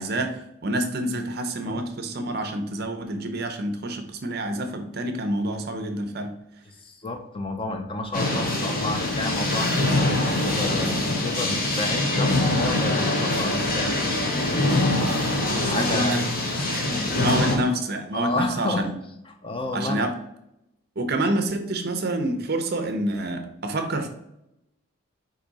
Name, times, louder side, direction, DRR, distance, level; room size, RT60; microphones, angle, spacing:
voice 1, 0.0-6.3 15.5-16.2 16.7-18.9 19.7-20.1 21.0-24.1, right 1 dB, 45° right, 6 dB, 0.6 m, -27 dB
voice 2, 6.7-14.7 15.6-16.2 16.6-16.8 18.1-18.9 19.3-20.1, left 2 dB, 25° left, 5 dB, 0.5 m, -31 dB
sound 1, 8.1-17.6, left 2 dB, 40° left, 0.9 m, -24 dB
4.9 x 2.7 x 4.0 m, 0.82 s
head